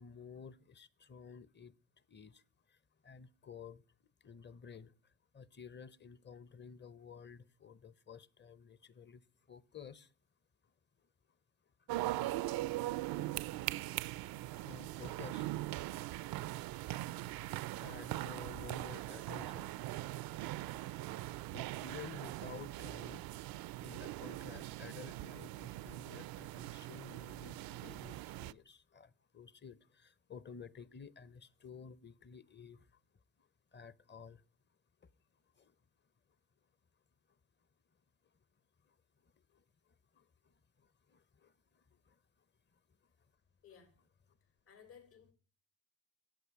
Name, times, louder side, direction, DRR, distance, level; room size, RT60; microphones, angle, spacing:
voice 1, 0.0-1.7 2.1-2.4 3.0-3.8 4.2-4.9 5.3-9.2 9.5-10.1 14.5-15.5 17.4-17.5 17.8-19.7 21.5-23.2 23.8-32.8 33.7-34.4 35.6-35.7 40.2-40.3 41.1-41.5 42.1-42.2, left 6 dB, 25° left, 0.7 m, -52 dB
sound 1, 11.9-28.5, right 16 dB, 60° right, 0.5 m, -41 dB
voice 2, 43.6-44.0 44.4-45.3, left 7 dB, 75° left, 5.3 m, -59 dB
11.5 x 8.0 x 4.7 m
hypercardioid pair, 55°, 42 cm